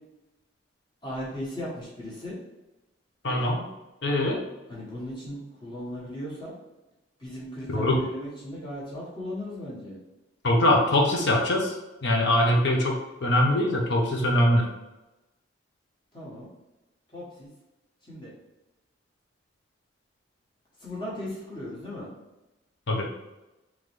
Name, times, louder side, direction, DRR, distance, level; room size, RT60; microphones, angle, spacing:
voice 1, 1.0-2.4 4.7-6.6 7.2-10.0 16.1-16.5 17.1-17.5 18.1-18.3 20.8-22.1, equal, 25° left, -6 dB, 1.3 m, -37 dB
voice 2, 3.2-3.6 4.0-4.4 7.7-8.0 10.4-11.7 12.0-14.7 22.9-23.1, left 1 dB, 65° left, 0 dB, 0.7 m, -22 dB
3.8 x 3.1 x 3.2 m, 1.0 s
head